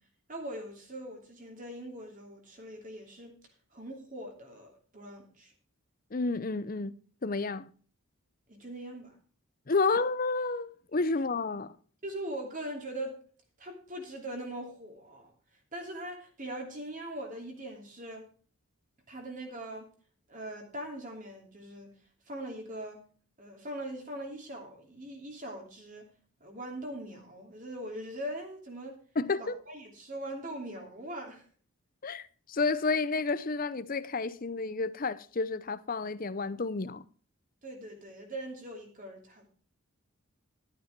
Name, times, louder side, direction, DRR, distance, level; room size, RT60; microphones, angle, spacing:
voice 1, 0.3-3.4 3.7-5.5 8.5-9.1 12.0-13.2 13.6-15.3 15.7-18.3 19.1-19.9 20.3-21.9 22.3-23.0 23.4-26.1 26.4-29.0 29.4-31.4 37.6-39.5, right 1 dB, 35° right, 2.9 m, -41 dB
voice 2, 6.1-6.9 7.2-7.7 9.7-11.7 29.2-29.5 32.0-37.0, left 3 dB, 40° left, 0.6 m, -30 dB
12.5 x 9.2 x 4.5 m
head